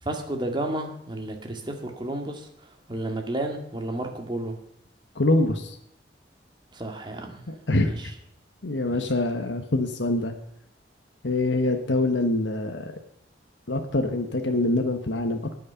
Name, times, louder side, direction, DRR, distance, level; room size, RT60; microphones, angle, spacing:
voice 1, 0.0-4.6 6.7-7.4 7.8-8.1 8.9-9.1, right 1 dB, 25° right, 3 dB, 2.1 m, -32 dB
voice 2, 5.1-5.8 7.5-8.0 8.6-10.3 11.2-12.9 13.7-15.5, left 2 dB, 85° left, 5 dB, 1.2 m, -25 dB
19.5 x 6.5 x 5.7 m, 0.77 s
head